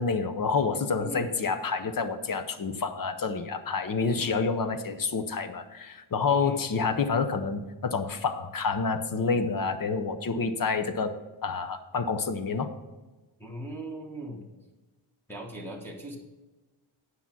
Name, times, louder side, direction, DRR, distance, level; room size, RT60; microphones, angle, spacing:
voice 1, 0.0-11.2 11.4-12.7, left 4 dB, 45° left, 10 dB, 0.8 m, -28 dB
voice 2, 1.0-1.3 4.1-4.3 6.3-6.6 13.4-14.4 15.3-16.2, right 1 dB, 5° left, -3 dB, 1.2 m, -39 dB
9.8 x 5.7 x 5.9 m, 1.2 s
wide cardioid pair, 175°, 48 cm